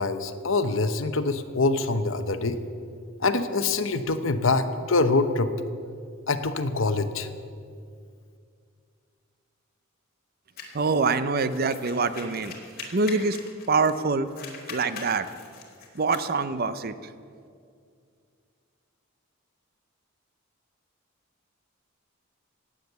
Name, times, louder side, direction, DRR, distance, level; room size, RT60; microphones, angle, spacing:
voice 1, 0.0-2.6 3.2-5.5 6.3-7.3, left 3 dB, 70° left, 10 dB, 0.9 m, -25 dB
sound 1, 10.6-14.0 14.3-16.3, left 4 dB, 45° left, 2.6 m, -42 dB
voice 2, 10.7-12.5 12.9-13.4 13.7-14.3 14.7-15.3 15.9-16.9, right 4 dB, 45° right, 13 dB, 0.6 m, -25 dB
16.5 x 9.7 x 8.0 m, 2.3 s
head